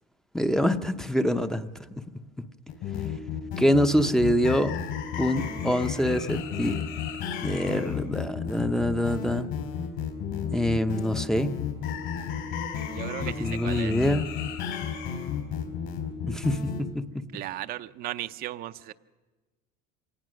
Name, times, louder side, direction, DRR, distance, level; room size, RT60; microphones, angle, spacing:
voice 1, 0.3-1.7 3.6-4.8 5.2-6.8 7.4-9.5 10.5-11.6 13.2-14.3 16.2-17.4, equal, ahead, 6 dB, 0.6 m, -25 dB
sound 1, 2.7-16.8, left 7 dB, 65° left, 4.3 m, -32 dB
voice 2, 12.9-13.9 17.3-18.9, right 14 dB, 50° right, 10 dB, 0.6 m, -36 dB
24.5 x 18.5 x 6.2 m, 1.3 s
cardioid pair, 135°, 20 cm